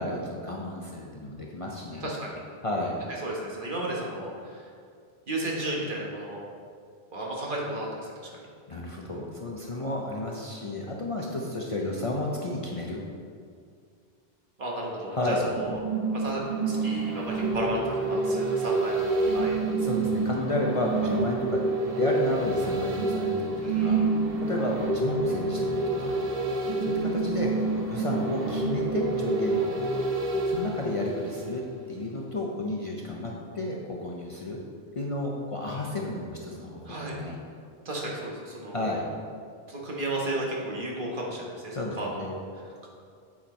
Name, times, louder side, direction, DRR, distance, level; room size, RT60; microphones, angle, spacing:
voice 1, 0.0-2.1 2.6-3.0 8.7-13.0 15.1-15.5 19.8-21.7 22.0-24.0 24.4-26.2 26.8-29.7 30.5-34.6 35.0-37.4 38.7-39.1 41.7-42.3, left 1 dB, 40° left, -2 dB, 0.6 m, -32 dB
voice 2, 2.0-2.4 3.2-4.7 5.3-6.4 7.1-8.3 14.6-15.8 16.1-19.7 23.6-24.1 36.8-37.2 37.8-38.9 39.7-42.9, right 1 dB, 55° right, -3 dB, 1.3 m, -34 dB
sound 1, 15.6-31.8 32.2-32.3, right 3 dB, 40° right, 1.0 m, -28 dB
8.5 x 4.4 x 4.3 m, 2.2 s
omnidirectional pair, 1.1 m